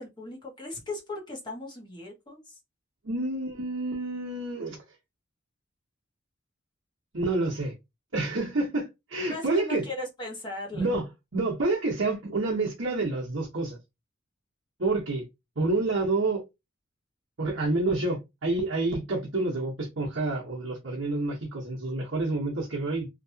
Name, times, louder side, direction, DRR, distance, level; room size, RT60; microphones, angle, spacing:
voice 1, 0.0-2.5 9.3-10.9, left 2 dB, 20° left, 1.2 m, -38 dB
voice 2, 3.0-4.8 7.1-7.7 8.1-9.9 10.7-11.1 11.3-13.8 14.8-15.2 15.6-16.4 17.4-23.1, right 2 dB, 70° right, 1.0 m, -28 dB
3.1 x 2.8 x 2.7 m
head